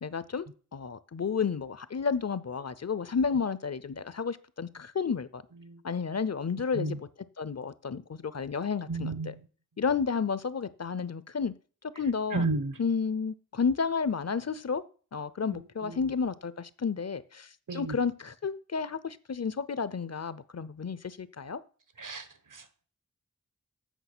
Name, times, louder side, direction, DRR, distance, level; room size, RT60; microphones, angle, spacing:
voice 1, 0.0-5.4 5.8-7.1 7.4-9.3 9.8-11.5 12.0-12.4 12.8-14.8 15.1-21.6, left 5 dB, 55° left, 0.6 m, -31 dB
voice 2, 8.9-9.4 12.3-12.8 15.5-16.1 17.7-18.0 22.0-22.6, right 3 dB, 75° right, 1.1 m, -33 dB
8.2 x 6.2 x 6.1 m
wide cardioid pair, 70°, 32 cm